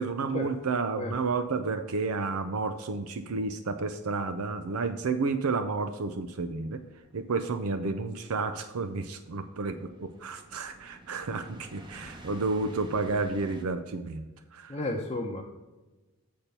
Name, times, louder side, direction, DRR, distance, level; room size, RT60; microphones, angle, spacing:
voice 1, 0.0-6.8 7.1-14.2 14.5-14.8, right 4 dB, 75° right, 10 dB, 0.5 m, -31 dB
sound 1, 6.6-13.6, right 1 dB, 20° right, 1.0 m, -51 dB
voice 2, 14.7-15.4, left 2 dB, 25° left, -2 dB, 0.7 m, -32 dB
8.4 x 4.4 x 6.7 m, 1.1 s
head